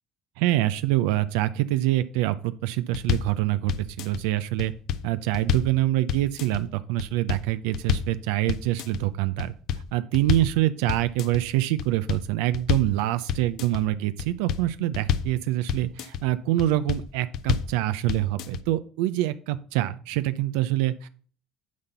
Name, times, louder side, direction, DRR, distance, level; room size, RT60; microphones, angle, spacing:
voice 1, 0.4-4.7 5.0-9.5 9.9-21.1, right 15 dB, 90° right, 13 dB, 0.4 m, -25 dB
sound 1, 2.9-3.4 3.7-4.2 4.6-5.8 6.1-6.6 7.0-7.5 7.7-8.2 8.5-9.0 9.4-10.6 10.9-11.4 11.8-13.0 13.3-13.8 14.2-15.4 15.7-16.2 16.6-17.1 17.3-17.8 18.1-18.6, left 8 dB, 65° left, 0.6 m, -28 dB
9.5 x 4.1 x 6.7 m, 0.43 s
supercardioid pair, 105°, 0 cm